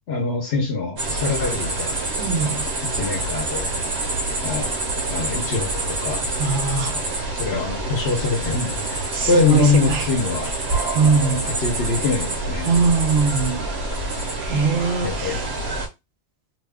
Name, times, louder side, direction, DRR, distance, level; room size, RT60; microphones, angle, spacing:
voice 1, 0.1-2.0 2.4-3.7 4.4-4.7 5.1-6.3 6.8-7.0 7.3-10.6 11.0-12.7 15.0-15.4, left 4 dB, 65° left, 1.0 m, -24 dB
sound 1, 1.0-15.9, right 2 dB, 65° right, 1.2 m, -27 dB
voice 2, 2.2-2.6 6.4-7.0 9.1-10.1 10.9-11.5 12.6-13.7 14.4-15.5, right 4 dB, 85° right, 1.1 m, -21 dB
2.9 x 2.2 x 3.3 m
omnidirectional pair, 1.2 m